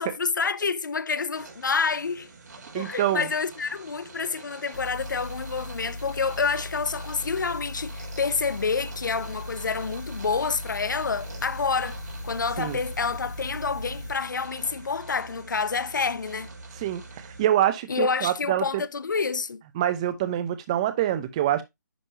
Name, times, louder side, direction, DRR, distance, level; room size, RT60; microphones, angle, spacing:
voice 1, 0.0-2.3 2.7-16.5 17.9-19.6, left 5 dB, 85° left, 0.7 m, -28 dB
sound 1, 1.3-17.5, right 3 dB, 65° right, 3.2 m, -45 dB
voice 2, 2.7-3.3 12.6-12.8 16.8-18.8 19.7-21.6, right 12 dB, 20° right, 0.8 m, -25 dB
sound 2, 4.7-14.1, left 1 dB, 60° left, 1.7 m, -38 dB
10.0 x 3.5 x 2.8 m
hypercardioid pair, 170°, 10 cm